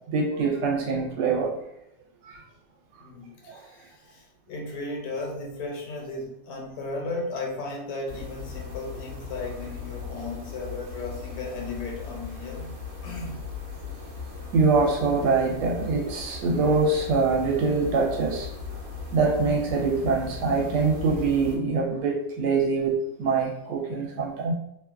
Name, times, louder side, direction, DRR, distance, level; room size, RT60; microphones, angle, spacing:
voice 1, 0.1-1.5 2.2-2.4 3.5-3.6 14.5-18.5 19.1-24.5, right 4 dB, 85° right, -3 dB, 1.3 m, -24 dB
voice 2, 3.0-12.7 13.0-13.4, left 2 dB, 70° left, -1 dB, 1.2 m, -35 dB
sound 1, 8.1-21.6, left 5 dB, 55° right, 1.0 m, -38 dB
3.0 x 2.2 x 2.4 m, 0.80 s
omnidirectional pair, 1.7 m